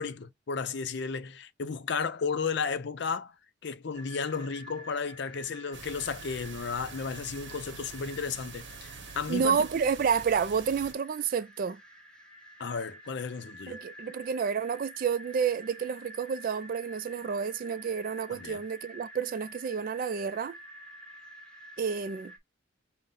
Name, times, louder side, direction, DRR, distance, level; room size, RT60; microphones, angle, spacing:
voice 1, 0.0-3.3 3.6-8.9 9.1-9.7 12.6-13.8 18.3-18.6, left 5 dB, 65° left, 0.5 m, -33 dB
sound 1, 3.9-22.4, right 1 dB, 5° left, 1.2 m, -50 dB
sound 2, 5.7-10.9, right 5 dB, 70° right, 0.8 m, -46 dB
voice 2, 9.3-11.8 13.7-20.6 21.8-22.3, right 6 dB, 45° right, 0.3 m, -30 dB
5.5 x 2.1 x 3.8 m
head